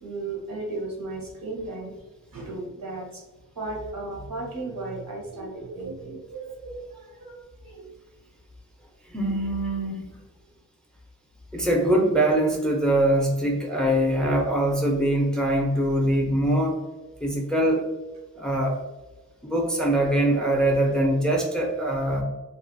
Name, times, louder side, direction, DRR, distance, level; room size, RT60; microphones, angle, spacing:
voice 1, 0.0-2.0 2.3-3.2 3.6-7.9 9.3-9.4, right 2 dB, 75° right, -1 dB, 0.8 m, -35 dB
voice 2, 9.1-10.2 11.5-16.8 17.2-17.9 18.4-18.8 19.4-22.2, right 1 dB, ahead, 0 dB, 0.5 m, -23 dB
2.5 x 2.4 x 2.5 m, 1.1 s
wide cardioid pair, 60°, 35 cm